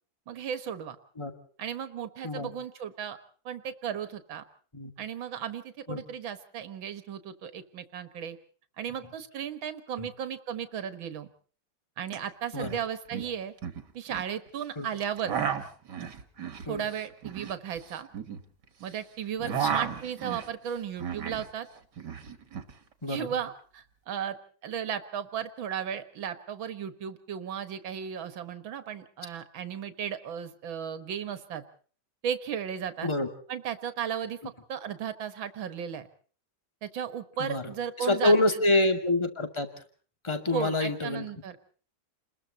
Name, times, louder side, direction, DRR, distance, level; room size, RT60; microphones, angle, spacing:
voice 1, 0.3-1.0 1.6-3.2 3.5-4.4 5.0-8.4 8.8-11.3 12.0-13.5 13.9-15.4 16.6-18.1 18.8-21.7 23.1-24.4 24.6-31.6 32.2-33.1 33.5-34.4 34.7-36.1 36.8-38.3 40.5-41.7, right 8 dB, 75° right, 11 dB, 2.3 m, -35 dB
sound 1, 12.1-12.2 12.4-12.8 13.1-14.3 15.0-18.9 19.2-21.5 21.8-22.7, right 7 dB, 60° right, 2.3 m, -34 dB
voice 2, 19.4-19.8 23.0-23.3 33.0-33.3 37.4-39.7 40.2-41.3, left 2 dB, 15° left, 7 dB, 2.2 m, -27 dB
29.5 x 21.0 x 4.2 m, 0.43 s
omnidirectional pair, 2.2 m